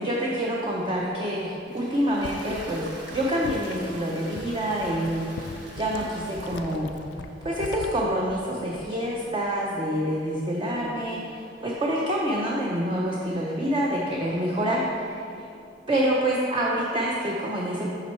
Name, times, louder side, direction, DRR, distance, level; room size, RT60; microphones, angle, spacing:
voice 1, 0.0-7.0 7.4-15.3 15.9-17.9, equal, 30° right, -4 dB, 0.6 m, -27 dB
Toilet flush, 1.3-15.4, right 1 dB, 75° right, 1.3 m, -48 dB
sound 1, 2.0-9.1 9.4-9.8, left 4 dB, 70° left, 0.4 m, -41 dB
6.1 x 5.8 x 4.4 m, 2.6 s
head